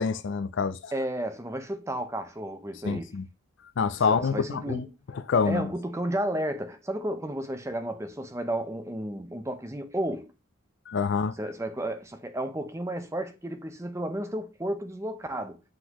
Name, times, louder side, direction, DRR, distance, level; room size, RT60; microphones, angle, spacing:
voice 1, 0.0-0.9 2.8-3.2 3.8-4.8 5.1-5.7 10.9-11.4, left 5 dB, 55° left, 0.4 m, -26 dB
voice 2, 0.9-3.1 4.1-4.8 5.4-10.3 11.4-15.6, right 1 dB, 15° right, 0.7 m, -32 dB
8.0 x 3.9 x 3.0 m
head